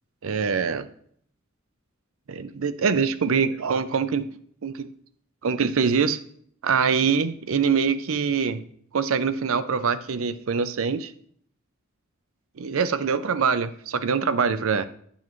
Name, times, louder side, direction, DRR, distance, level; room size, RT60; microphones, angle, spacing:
voice 1, 0.2-0.9 2.3-4.3 4.6-4.9 5.4-6.2 6.6-8.6 8.9-11.1 12.6-14.9, right 5 dB, 70° right, 12 dB, 0.5 m, -24 dB
9.6 x 7.1 x 3.1 m, 0.63 s
head